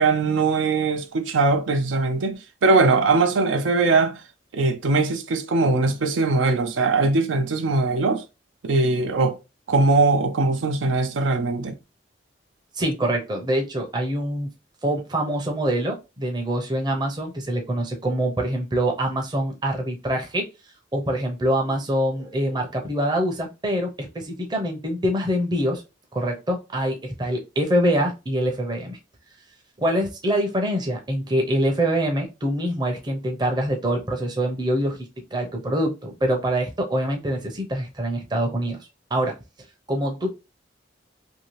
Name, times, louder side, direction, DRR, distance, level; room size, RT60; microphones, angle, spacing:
voice 1, 0.0-4.2 4.5-8.2 8.6-9.4 9.7-11.7, right 3 dB, 85° right, 0.5 m, -21 dB
voice 2, 12.7-14.5 14.8-20.4 20.9-25.8 26.1-29.0 29.8-38.8 39.1-39.4 39.9-40.3, right 1 dB, 20° right, 0.6 m, -25 dB
2.7 x 2.7 x 3.0 m
head